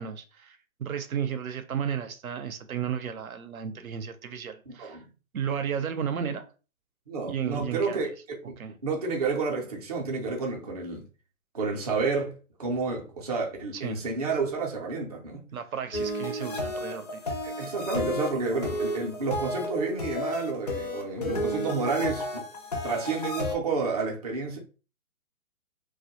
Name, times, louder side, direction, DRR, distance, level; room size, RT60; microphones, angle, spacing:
voice 1, 0.0-5.0 5.3-6.5 7.3-8.0 8.6-8.7 13.8-14.0 15.5-17.3, right 8 dB, 80° right, 0.6 m, -33 dB
voice 2, 4.7-5.1 7.1-11.1 11.5-15.4 17.3-22.4 22.8-24.6, right 4 dB, 30° right, 0.4 m, -30 dB
sound 1, 15.9-23.5, left 1 dB, 30° left, 0.4 m, -32 dB
2.2 x 2.1 x 2.7 m
figure-of-eight pair, 140°, 42 cm